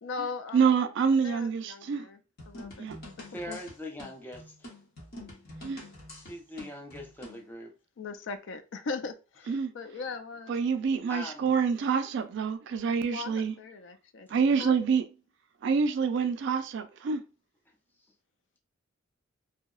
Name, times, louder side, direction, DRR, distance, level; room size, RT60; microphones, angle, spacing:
voice 1, 0.0-0.8 1.2-2.2 2.5-2.9 3.5-3.6 8.0-11.0 13.1-14.8, left 4 dB, 70° left, 0.4 m, -39 dB
voice 2, 0.5-2.1 2.8-3.0 5.6-5.8 9.5-9.7 10.5-13.5 14.3-15.0 15.6-17.2, right 6 dB, 65° right, 0.3 m, -27 dB
sound 1, 2.4-7.4, left 1 dB, 50° left, 0.9 m, -47 dB
voice 3, 3.3-4.7 6.2-7.7 11.1-11.6, left 1 dB, 10° left, 0.4 m, -41 dB
2.7 x 2.0 x 2.3 m
head